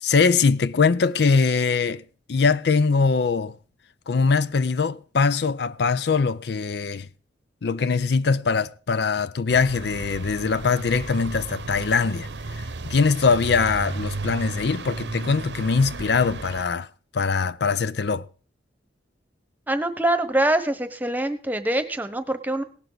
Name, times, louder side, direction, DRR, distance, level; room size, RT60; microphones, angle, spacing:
voice 1, 0.0-2.0 2.3-3.5 4.1-7.1 7.6-16.9 17.1-18.3, left 5 dB, 65° left, 0.5 m, -22 dB
sound 1, 9.5-16.6, right 3 dB, 70° right, 0.8 m, -34 dB
voice 2, 19.7-22.6, right 1 dB, 10° right, 1.2 m, -24 dB
17.5 x 11.5 x 4.0 m
head